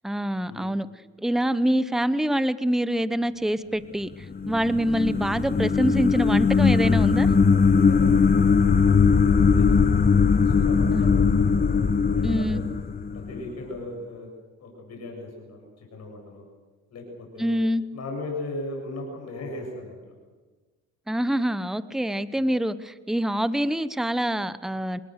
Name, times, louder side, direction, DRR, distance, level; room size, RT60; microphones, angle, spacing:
voice 1, 0.0-0.9 1.2-4.1 4.5-7.3 10.9-11.2 12.2-12.6 17.4-17.8 21.1-25.0, equal, ahead, 14 dB, 0.8 m, -25 dB
sound 1, 4.2-13.5, left 5 dB, 30° left, 1.2 m, -20 dB
voice 2, 7.7-8.1 8.4-8.8 9.5-9.7 10.1-12.6 13.1-14.3 14.6-16.4 16.9-17.5 17.9-20.0 22.3-22.4, left 2 dB, 60° left, 0 dB, 8.0 m, -38 dB
26.0 x 20.5 x 6.6 m, 1.3 s
cardioid pair, 90°, 30 cm